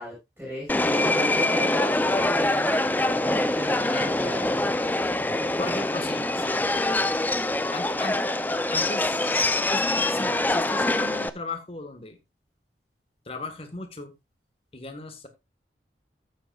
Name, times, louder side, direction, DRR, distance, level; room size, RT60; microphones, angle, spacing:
voice 1, 0.0-4.6, equal, 15° right, -6 dB, 5.9 m, -34 dB
Subway metro underground, 0.7-11.3, left 2 dB, 10° left, 0.5 m, -24 dB
voice 2, 5.1-6.8 7.7-8.2 8.7-12.2 13.2-14.1 14.7-15.3, left 3 dB, 30° left, 7 dB, 1.5 m, -37 dB
14.5 x 8.0 x 2.4 m, 0.21 s
head